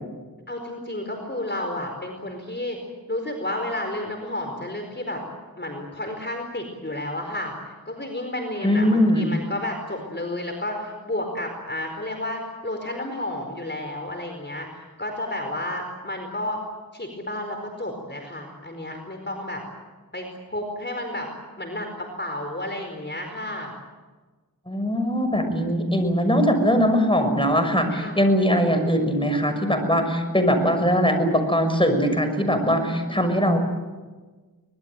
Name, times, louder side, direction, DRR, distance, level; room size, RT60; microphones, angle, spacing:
voice 1, 0.5-2.8 3.1-5.2 5.6-16.6 16.9-19.6 20.1-21.3 21.6-23.7 27.9-28.2, left 1 dB, 30° left, 3 dB, 4.7 m, -31 dB
voice 2, 8.6-9.4 24.7-33.6, equal, 15° left, 6 dB, 6.3 m, -21 dB
24.5 x 20.5 x 9.1 m, 1.3 s
cardioid pair, 45°, 36 cm